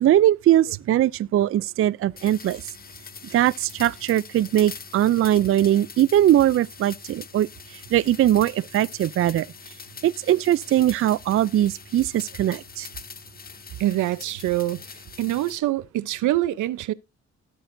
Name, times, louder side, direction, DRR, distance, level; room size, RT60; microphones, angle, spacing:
voice 1, 0.0-2.6 3.3-9.5 10.0-12.9, right 12 dB, 45° right, 0.4 m, -21 dB
sound 1, 2.2-15.6, left 6 dB, 30° left, 0.8 m, -43 dB
voice 2, 13.8-14.8 15.2-16.9, right 15 dB, 80° right, 0.7 m, -25 dB
18.5 x 6.3 x 2.6 m
cardioid pair, 90°, 30 cm